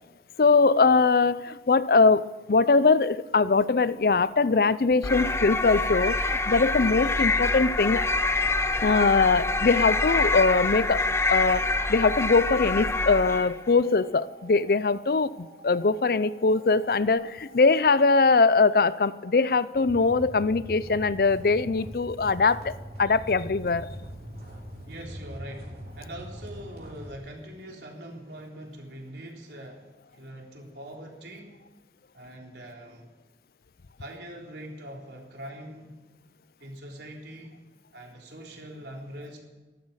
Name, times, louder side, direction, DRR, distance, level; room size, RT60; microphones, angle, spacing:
voice 1, 0.4-8.1 8.8-22.7 23.0-23.9, left 4 dB, 55° left, 0.5 m, -22 dB
sound 1, 5.0-13.6, left 3 dB, 15° left, 0.6 m, -26 dB
sound 2, 12.8-27.1, equal, 55° right, 4.0 m, -44 dB
voice 2, 24.9-31.6 32.1-33.1 34.0-36.0 36.6-37.6 37.9-39.4, right 1 dB, 75° right, 3.7 m, -43 dB
14.0 x 12.5 x 7.4 m
head